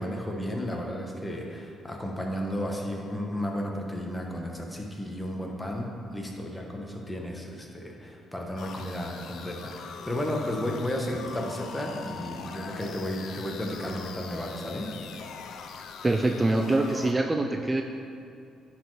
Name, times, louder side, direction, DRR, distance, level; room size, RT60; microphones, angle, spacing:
voice 1, 0.0-14.9, equal, 15° left, 0 dB, 1.5 m, -33 dB
sound 1, 8.6-17.1, left 6 dB, 70° left, 0.6 m, -42 dB
voice 2, 16.0-17.8, right 2 dB, 25° right, 4 dB, 0.5 m, -24 dB
9.8 x 4.6 x 4.9 m, 2.5 s
supercardioid pair, 55°, 0 cm